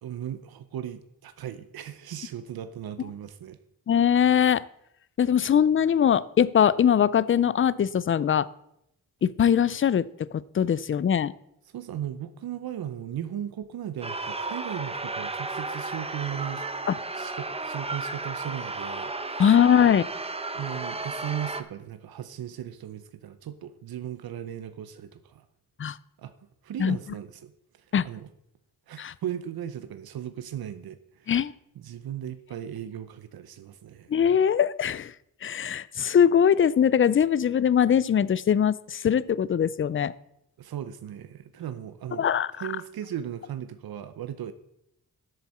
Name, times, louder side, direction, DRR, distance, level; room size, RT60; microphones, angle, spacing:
voice 1, 0.0-3.6 11.7-16.7 17.1-19.4 20.5-25.5 26.2-26.3 26.6-27.5 27.8-28.3 28.9-31.5 31.8-34.1 40.6-42.3 42.5-44.5, right 10 dB, 85° right, 11 dB, 0.6 m, -37 dB
voice 2, 3.9-4.6 5.2-8.5 9.2-11.3 16.9-17.0 19.4-20.0 25.8-26.0 26.8-27.0 27.9-28.1 29.0-29.1 31.3-31.5 34.1-35.1 35.4-40.1 42.2-42.5, left 8 dB, 35° left, 20 dB, 0.4 m, -21 dB
sound 1, 14.0-21.6, right 3 dB, 15° right, 0.7 m, -34 dB
13.5 x 7.8 x 4.2 m, 0.79 s
wide cardioid pair, 95°, 35 cm